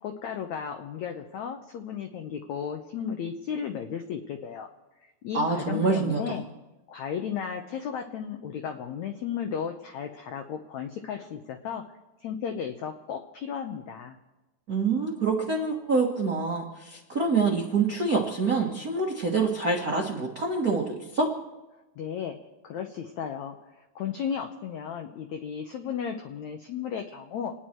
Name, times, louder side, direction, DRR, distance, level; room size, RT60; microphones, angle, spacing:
voice 1, 0.0-4.7 5.2-6.5 6.9-11.8 12.2-14.2 22.0-22.4 22.6-27.5, left 7 dB, 85° left, 5 dB, 1.6 m, -34 dB
voice 2, 5.3-6.4 14.7-21.3, right 4 dB, 65° right, -1 dB, 0.8 m, -26 dB
29.5 x 10.5 x 4.5 m, 1.1 s
omnidirectional pair, 4.5 m